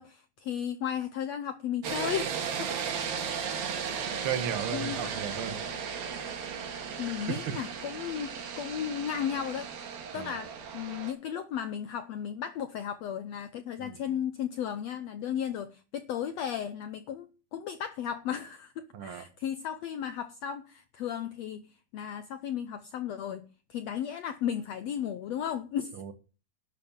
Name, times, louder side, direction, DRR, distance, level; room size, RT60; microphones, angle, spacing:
voice 1, 0.0-3.2 4.7-5.2 7.0-9.7 10.1-21.7 21.9-23.4 23.7-25.9, left 9 dB, 80° left, 1.4 m, -35 dB
sound 1, 1.8-11.1, right 6 dB, 85° right, 3.7 m, -36 dB
voice 2, 4.2-5.6 10.1-10.3 13.8-14.0 18.9-19.2 26.0-26.1, right 9 dB, 50° right, 1.8 m, -35 dB
12.0 x 7.3 x 7.4 m
omnidirectional pair, 4.0 m